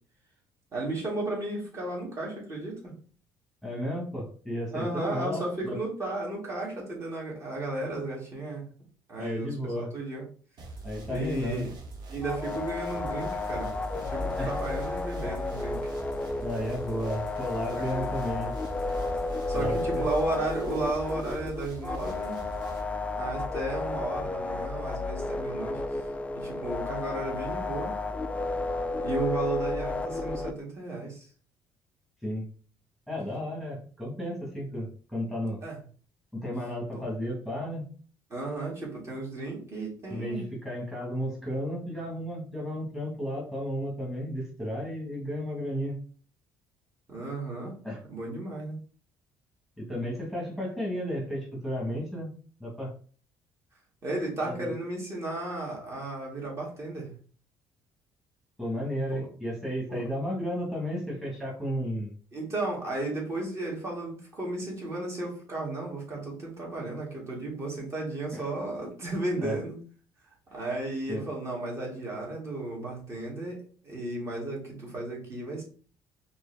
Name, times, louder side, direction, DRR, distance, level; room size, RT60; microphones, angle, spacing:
voice 1, 0.7-2.9 4.7-8.6 9.1-10.2 11.1-11.7 12.1-15.8 17.7-18.1 19.5-22.4 23.2-26.0 26.4-28.0 29.0-31.2 35.6-35.8 36.9-37.0 38.3-40.5 47.1-47.7 48.1-48.8 54.0-57.2 59.1-59.2 59.9-60.2 62.3-69.8 70.5-75.6, right 2 dB, 35° right, -3 dB, 2.0 m, -34 dB
voice 2, 3.6-5.8 9.2-9.9 10.8-11.7 14.4-14.6 16.4-18.5 19.5-20.1 32.2-32.5 33.1-35.6 36.3-37.9 40.1-45.9 47.8-48.0 49.8-52.3 52.6-52.9 54.4-54.7 58.6-62.1 68.3-68.4 69.4-69.6 71.1-71.3, equal, ahead, -3 dB, 1.4 m, -33 dB
sound 1, 10.6-22.8, right 2 dB, 60° right, 1.1 m, -43 dB
sound 2, 12.2-30.5, left 3 dB, 15° left, 0.3 m, -32 dB
4.5 x 2.9 x 3.3 m, 0.41 s
cardioid pair, 125°, 8 cm